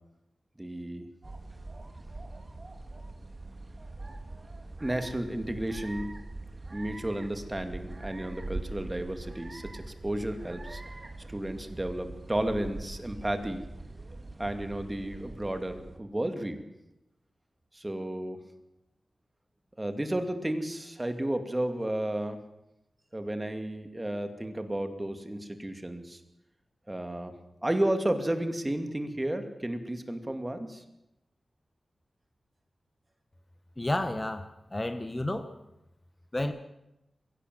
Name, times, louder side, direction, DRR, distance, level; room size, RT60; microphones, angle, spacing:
voice 1, 0.6-1.1 4.8-6.1 6.7-10.8 11.3-13.6 14.4-16.6 17.7-18.4 19.8-22.4 23.1-26.2 26.9-27.3 27.6-30.8, right 1 dB, 20° right, 7 dB, 2.5 m, -32 dB
sound 1, 1.2-16.0, right 2 dB, 35° right, 2.4 m, -43 dB
voice 2, 33.8-35.5 36.3-36.5, left 1 dB, 20° left, 9 dB, 1.3 m, -31 dB
22.5 x 17.0 x 7.8 m, 0.88 s
wide cardioid pair, 90°, 0 cm